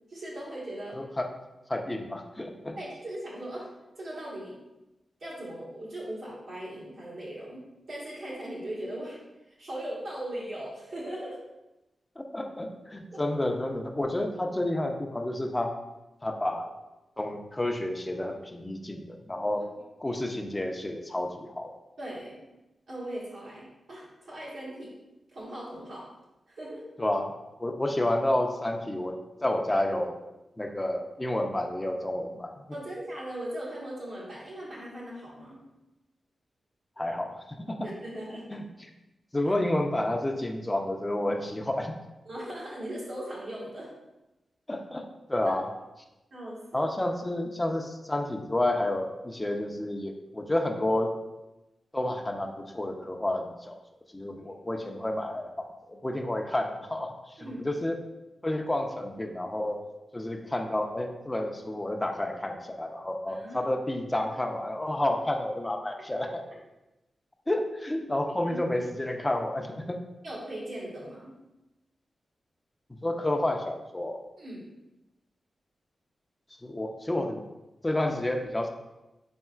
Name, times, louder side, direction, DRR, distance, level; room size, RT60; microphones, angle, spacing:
voice 1, 0.1-1.0 2.8-3.7 3.9-4.6 5.2-9.2 9.6-11.4 13.1-13.3 19.5-19.6 22.0-22.4 22.9-24.9 25.3-26.1 26.5-26.9 32.7-35.6 37.8-38.6 39.5-39.6 42.2-43.9 45.4-45.5 46.3-46.8 57.4-57.6 63.3-63.6 68.4-68.6 70.2-71.4 74.4-74.6, right 1 dB, 75° right, -8 dB, 1.3 m, -39 dB
voice 2, 0.9-1.3 1.7-2.8 12.2-15.8 16.2-16.7 17.2-19.7 20.0-21.7 27.0-27.3 27.6-30.1 30.6-32.6 37.0-37.9 38.5-38.6 39.3-42.0 44.7-45.7 46.7-51.2 51.9-53.8 54.1-58.0 58.4-59.8 60.1-66.4 67.5-70.0 73.0-74.2 76.6-77.4 77.8-78.7, left 1 dB, 20° left, 3 dB, 0.5 m, -30 dB
4.3 x 3.6 x 2.4 m, 0.99 s
cardioid pair, 50°, 0 cm